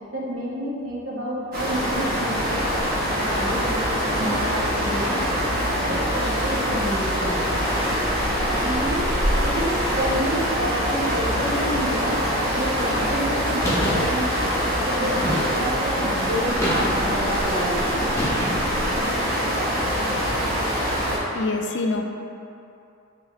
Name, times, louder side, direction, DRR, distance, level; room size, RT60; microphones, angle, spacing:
voice 1, 0.1-2.6 3.0-5.2 5.6-7.4 8.5-17.8, equal, 80° right, -6 dB, 1.0 m, -29 dB
sound 1, 1.5-21.2, equal, 45° right, 1.1 m, -24 dB
sound 2, 13.6-14.1 15.2-15.8 16.6-17.2 18.1-18.8, left 1 dB, 15° left, 0.7 m, -27 dB
voice 2, 19.2-20.2 21.3-22.0, left 3 dB, 55° left, 4 dB, 0.3 m, -30 dB
4.7 x 2.7 x 3.1 m, 2.6 s
head